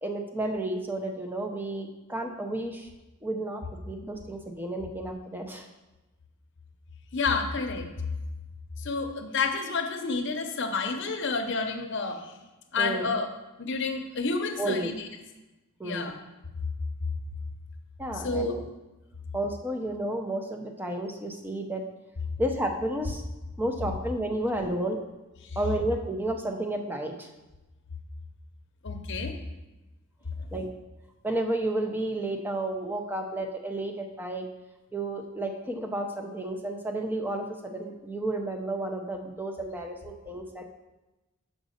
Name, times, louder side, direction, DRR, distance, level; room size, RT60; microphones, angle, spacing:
voice 1, 0.0-2.9 3.2-5.7 12.8-13.1 14.6-14.9 15.8-16.1 18.0-18.6 19.3-21.8 22.4-23.2 23.6-25.0 25.6-27.3 30.5-30.7 31.2-34.4 34.9-40.6, right 1 dB, 10° right, 3 dB, 0.7 m, -32 dB
voice 2, 7.1-7.9 8.8-12.3 12.7-13.3 13.6-15.1 15.8-16.1 18.1-18.6 25.4-25.6 28.8-29.3, left 4 dB, 55° left, 5 dB, 0.8 m, -30 dB
5.2 x 5.1 x 6.5 m, 1.1 s
head